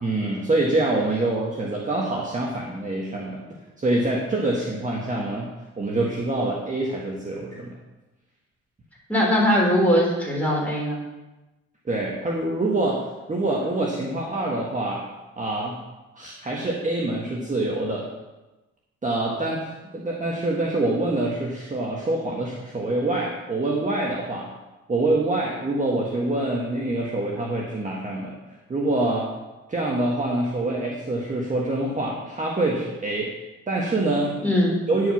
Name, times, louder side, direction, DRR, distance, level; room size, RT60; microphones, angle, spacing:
voice 1, 0.0-3.4 3.8-5.5 5.8-7.8 11.8-15.0 15.4-15.8 16.1-18.1 19.0-19.7 19.9-24.5 24.9-28.4 28.7-29.3 29.7-33.3 33.7-34.4 34.9-35.1, right 2 dB, 25° right, -3 dB, 1.5 m, -25 dB
voice 2, 9.1-11.0 34.4-34.8, equal, 5° left, -4 dB, 3.7 m, -20 dB
10.0 x 4.9 x 5.8 m, 1.0 s
cardioid pair, 90°, 30 cm